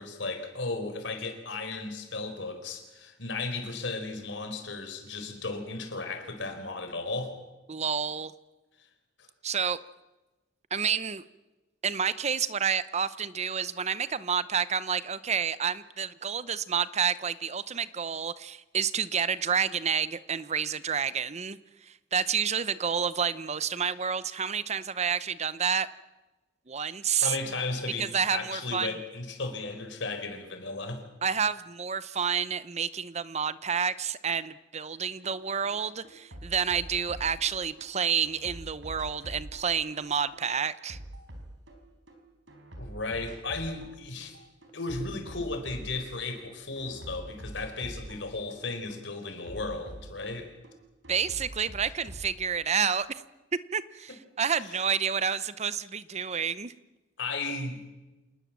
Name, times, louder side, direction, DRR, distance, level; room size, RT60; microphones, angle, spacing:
voice 1, 0.0-7.3 9.2-9.3 27.2-31.0 42.8-44.4 44.7-50.5 54.6-54.7 57.2-57.8, left 3 dB, 70° left, 7 dB, 4.5 m, -35 dB
voice 2, 7.7-8.3 9.4-9.8 10.7-11.2 11.8-25.9 26.7-27.4 28.0-28.9 31.2-41.0 51.1-53.2 53.7-56.7, right 7 dB, 35° right, 16 dB, 0.8 m, -29 dB
sound 1, 35.2-35.4 35.6-37.9 38.2-42.2 42.5-43.9 44.2-46.5 46.8-50.7 51.0-52.3, right 1 dB, 75° right, 4.7 m, -45 dB
27.5 x 20.0 x 7.4 m, 1.1 s
head